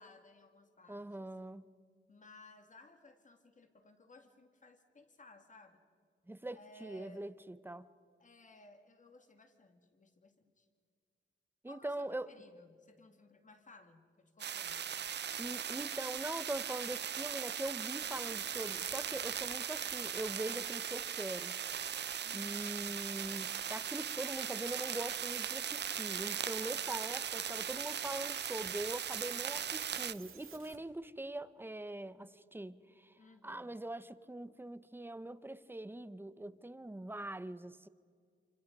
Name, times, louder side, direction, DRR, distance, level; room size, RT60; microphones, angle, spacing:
voice 1, 0.0-1.3 2.1-5.8 6.5-7.3 8.2-10.7 11.7-14.9 22.2-23.2 33.2-33.8, left 2 dB, 40° left, 2.1 m, -59 dB
voice 2, 0.9-1.7 6.3-7.9 11.6-12.3 15.4-21.6 22.3-33.2 33.4-37.9, right 1 dB, 10° right, 0.7 m, -42 dB
sound 1, 14.4-30.1, right 8 dB, 60° right, 0.5 m, -39 dB
sound 2, 18.0-30.8, right 6 dB, 90° right, 2.1 m, -56 dB
28.5 x 26.0 x 5.3 m
wide cardioid pair, 170°, 21 cm